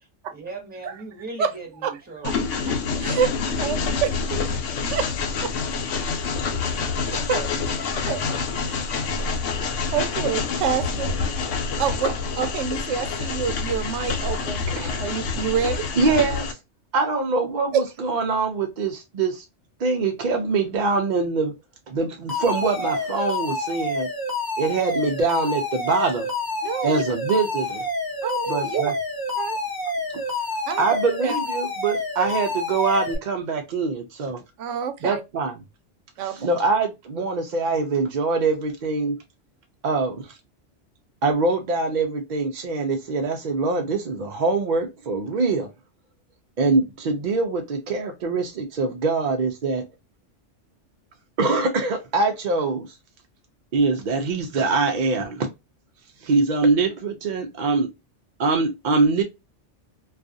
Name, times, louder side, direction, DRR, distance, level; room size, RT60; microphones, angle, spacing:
voice 1, 0.3-2.5, right 3 dB, 10° right, 0.7 m, -38 dB
Train, 2.2-16.5, left 5 dB, 80° left, 0.9 m, -27 dB
voice 2, 2.2-2.6 3.0-3.3 3.6-3.8 4.3-4.4 4.9-5.0 6.6-6.7 7.1-7.5 8.1-8.2 9.9-11.1 11.8-14.6 15.0-15.9 26.6-27.0 28.2-28.9 29.4-29.6 30.7-30.9 31.2-31.4 34.6-35.2 36.2-36.3, right 7 dB, 80° right, 0.9 m, -27 dB
voice 3, 16.0-16.6 16.9-19.4 19.8-21.5 21.9-24.1 24.6-26.3 26.8-27.9 28.5-28.9 30.8-34.4 35.0-35.6 36.2-39.2 39.8-40.4 41.2-45.7 46.6-49.8 51.4-53.0 53.7-55.5 56.2-57.9 58.4-59.2, right 3 dB, 60° right, 0.4 m, -23 dB
Alarm, 22.3-33.1, left 2 dB, 30° left, 0.4 m, -28 dB
2.4 x 2.4 x 2.4 m
omnidirectional pair, 1.2 m